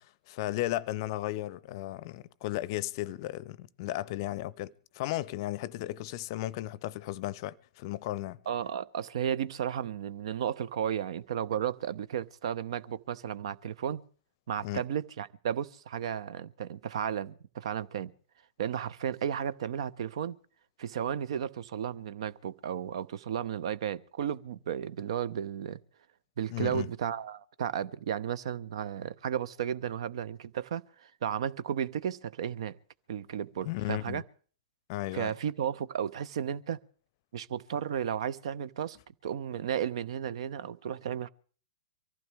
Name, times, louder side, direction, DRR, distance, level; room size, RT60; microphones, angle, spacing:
voice 1, 0.0-8.4 14.6-14.8 26.5-26.9 33.6-34.2 34.9-35.3, left 16 dB, 40° left, 0.6 m, -35 dB
voice 2, 8.5-14.0 14.5-18.1 18.6-20.4 20.8-25.8 26.4-32.8 33.1-34.2 35.1-36.8 37.3-39.0 39.2-41.3, right 9 dB, 55° right, 0.7 m, -34 dB
24.0 x 15.0 x 3.5 m
figure-of-eight pair, 110°, 4 cm